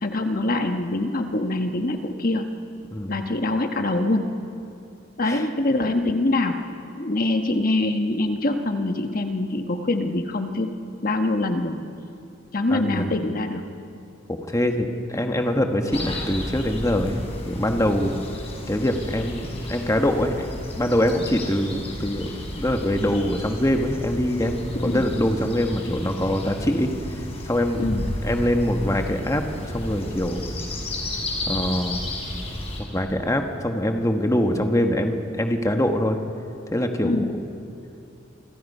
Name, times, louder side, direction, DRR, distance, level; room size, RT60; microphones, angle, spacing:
voice 1, 0.0-2.5 3.1-4.3 5.2-6.6 7.0-10.7 11.0-11.9 12.5-13.6 24.7-25.1 27.8-28.2 37.0-37.3, left 2 dB, 45° left, 5 dB, 1.2 m, -24 dB
voice 2, 12.7-13.2 14.3-18.2 18.7-20.5 20.8-22.3 22.5-26.9 27.4-27.8 28.2-30.5 31.5-32.0 32.9-36.2 36.7-37.3, left 1 dB, 15° left, 4 dB, 1.4 m, -24 dB
sound 1, 15.9-32.8, left 1 dB, 30° left, 5.4 m, -33 dB
28.5 x 25.0 x 5.5 m, 2.6 s
head